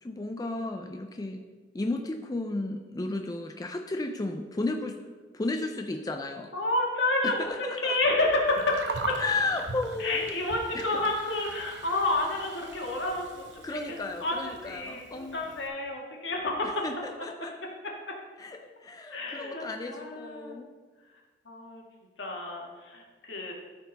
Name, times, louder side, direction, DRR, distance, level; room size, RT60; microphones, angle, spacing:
voice 1, 0.0-1.4 1.7-5.0 5.3-6.5 7.2-8.0 9.2-10.4 10.7-11.0 13.6-15.4 16.6-17.5 18.4-20.7, left 2 dB, 20° left, 4 dB, 0.4 m, -33 dB
voice 2, 6.5-7.4 7.8-9.2 10.0-16.8 19.1-20.6 21.5-21.8 22.2-23.5, left 2 dB, 75° left, -1 dB, 1.7 m, -30 dB
Gurgling, 8.5-15.7, right 3 dB, 75° right, 0.9 m, -42 dB
13.0 x 4.5 x 4.0 m, 1.4 s
head